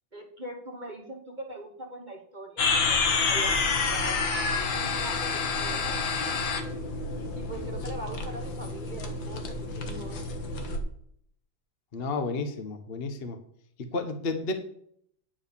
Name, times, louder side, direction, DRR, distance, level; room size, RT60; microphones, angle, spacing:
voice 1, 0.1-4.2 4.7-6.0 7.3-10.2, right 1 dB, 25° right, 1 dB, 1.1 m, -41 dB
sound 1, 2.6-10.8, left 4 dB, 70° left, 2.0 m, -29 dB
voice 2, 11.9-13.4 13.9-14.5, left 3 dB, 35° left, 6 dB, 1.1 m, -31 dB
10.5 x 4.8 x 6.8 m, 0.67 s
omnidirectional pair, 2.2 m